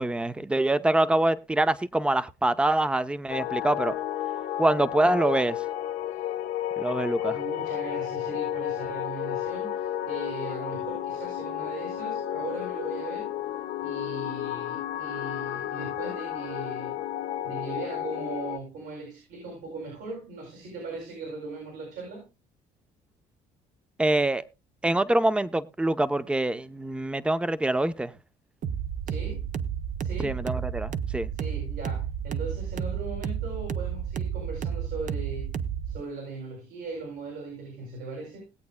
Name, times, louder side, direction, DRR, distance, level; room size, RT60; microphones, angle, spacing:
voice 1, 0.0-4.0 4.6-5.6 6.8-7.4 24.0-24.4 24.8-28.1 30.2-31.3, right 1 dB, 5° right, 0.7 m, -25 dB
sound 1, 3.3-18.6, left 11 dB, 80° left, 1.1 m, -32 dB
voice 2, 7.2-13.3 13.8-16.9 17.4-22.3 29.1-29.5 30.0-30.4 31.3-35.5 35.9-38.5, right 3 dB, 80° right, 7.7 m, -39 dB
sound 2, 28.6-36.0, right 8 dB, 50° right, 0.8 m, -31 dB
20.5 x 8.4 x 2.2 m
cardioid pair, 110°, 17 cm